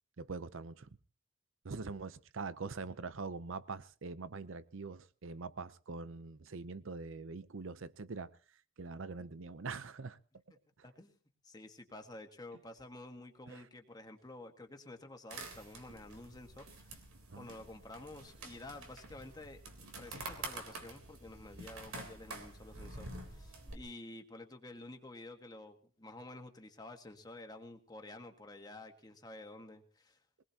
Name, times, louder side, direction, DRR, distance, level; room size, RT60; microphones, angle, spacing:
voice 1, 0.2-0.9 1.6-8.3 8.8-10.2 13.5-13.6 17.3-17.5, right 4 dB, 70° right, 0.7 m, -43 dB
voice 2, 10.8-11.2 11.4-16.9 17.3-19.6 20.0-30.2, left 2 dB, 20° left, 1.6 m, -51 dB
sound 1, 15.3-23.8, right 2 dB, 90° right, 3.5 m, -48 dB
22.5 x 20.0 x 2.9 m
head